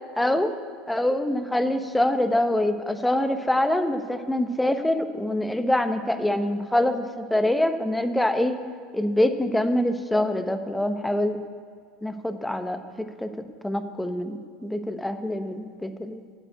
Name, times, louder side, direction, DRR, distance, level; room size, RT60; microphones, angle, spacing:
voice 1, 0.2-0.5 0.9-8.5 8.9-11.4 12.0-12.8 13.2-13.3 13.6-16.2, left 1 dB, 5° left, 9 dB, 0.8 m, -25 dB
8.9 x 7.6 x 9.0 m, 2.3 s
supercardioid pair, 115°, 0 cm